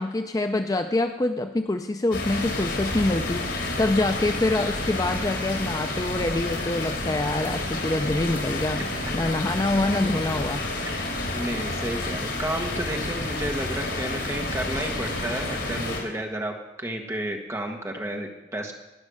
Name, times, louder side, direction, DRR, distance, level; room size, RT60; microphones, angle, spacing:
voice 1, 0.0-8.9 9.1-10.6, left 2 dB, 20° left, 7 dB, 0.4 m, -25 dB
sound 1, 2.1-16.0, left 2 dB, 80° left, 3.5 m, -30 dB
voice 2, 11.3-18.7, right 1 dB, 15° right, 2 dB, 1.4 m, -32 dB
18.5 x 6.3 x 6.4 m, 1.1 s
head